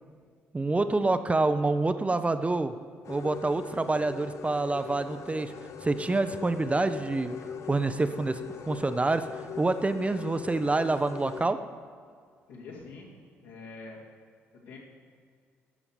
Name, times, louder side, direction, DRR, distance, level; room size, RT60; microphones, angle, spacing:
voice 1, 0.5-2.7 3.1-5.5 5.8-7.3 7.7-8.4 8.7-11.6, right 3 dB, 20° right, 10 dB, 0.6 m, -27 dB
sound 1, 3.0-11.5, left 7 dB, 50° left, 0.5 m, -41 dB
voice 2, 12.5-13.1 13.4-14.0 14.7-14.8, left 4 dB, 70° left, -3 dB, 2.4 m, -44 dB
11.0 x 7.1 x 6.8 m, 2.1 s
figure-of-eight pair, 45°, 6 cm